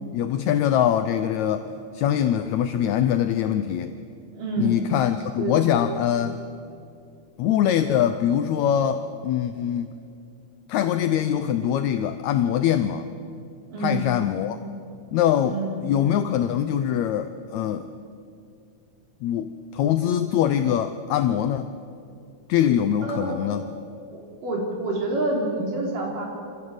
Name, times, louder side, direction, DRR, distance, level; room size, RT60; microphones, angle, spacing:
voice 1, 0.1-1.7 1.9-3.9 4.6-6.4 7.4-9.9 10.7-13.1 13.8-14.6 15.1-17.8 19.2-21.7 22.5-23.6, left 10 dB, 75° left, 9 dB, 1.7 m, -23 dB
voice 2, 4.3-4.8 5.4-5.6 13.7-14.2 15.5-15.9 23.0-23.3 24.1-26.3, right 2 dB, 70° right, -1 dB, 5.1 m, -27 dB
25.5 x 15.5 x 8.0 m, 2.4 s
omnidirectional pair, 3.9 m